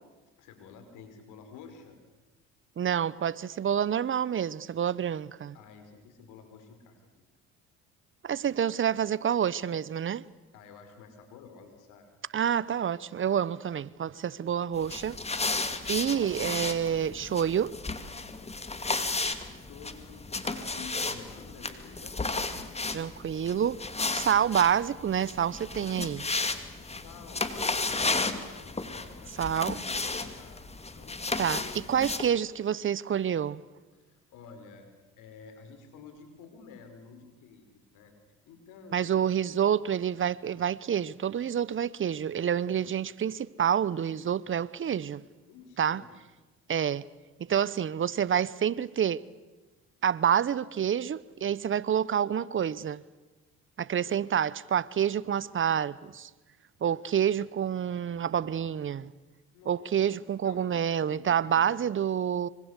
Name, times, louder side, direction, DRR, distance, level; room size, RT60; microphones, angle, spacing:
voice 1, 0.4-2.0 5.5-7.3 10.5-12.1 15.5-15.9 19.7-22.2 26.8-30.7 30.9-31.9 33.9-34.9 35.2-38.2 38.4-39.8 45.5-46.1 59.5-62.1, left 5 dB, 80° left, 5.3 m, -51 dB
voice 2, 2.8-5.5 8.2-10.2 12.3-15.2 15.9-17.7 22.9-23.8 24.1-26.3 29.4-29.8 31.4-31.6 31.9-33.6 38.9-45.2 45.8-46.0 46.7-47.0 47.4-49.2 50.0-53.0 53.8-56.3 56.8-59.1 59.7-62.5, right 8 dB, 40° right, 0.9 m, -28 dB
sound 1, 14.8-32.3, left 3 dB, 20° left, 2.4 m, -34 dB
25.5 x 24.5 x 8.3 m
supercardioid pair, 80°, 31 cm